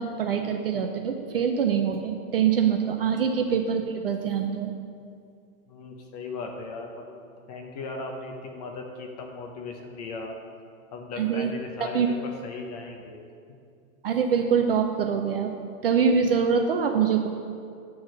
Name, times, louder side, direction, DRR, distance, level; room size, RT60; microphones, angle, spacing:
voice 1, 0.0-4.7 11.2-11.5 11.8-12.1 14.0-15.5 15.8-17.3, right 7 dB, 45° right, 5 dB, 0.4 m, -24 dB
voice 2, 5.7-7.2 7.5-10.4 10.9-13.2, left 3 dB, 30° left, 2 dB, 0.7 m, -37 dB
9.5 x 4.6 x 6.3 m, 2.3 s
supercardioid pair, 180°, 44 cm